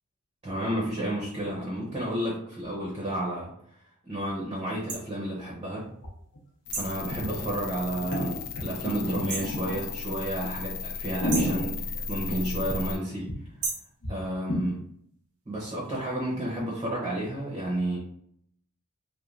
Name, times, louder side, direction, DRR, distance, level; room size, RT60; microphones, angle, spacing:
voice 1, 0.4-3.5 4.0-5.9 6.8-13.3 14.1-14.8 15.5-18.0, right 1 dB, 25° right, -4 dB, 0.6 m, -31 dB
sound 1, 4.9-5.0 6.7-7.0 9.3-9.6 11.3-11.6 13.6-13.9, right 3 dB, 80° right, 0.6 m, -33 dB
sound 2, 6.0-6.1 6.4-6.5 7.0-7.4 7.9-9.9 10.4-10.5 10.9-13.0 13.3-13.4 13.6-13.7 14.0-14.1 14.5-14.6, equal, 85° left, 0.8 m, -31 dB
sound 3, 6.7-13.0, left 5 dB, 50° left, 0.3 m, -36 dB
3.1 x 2.1 x 2.4 m, 0.67 s
head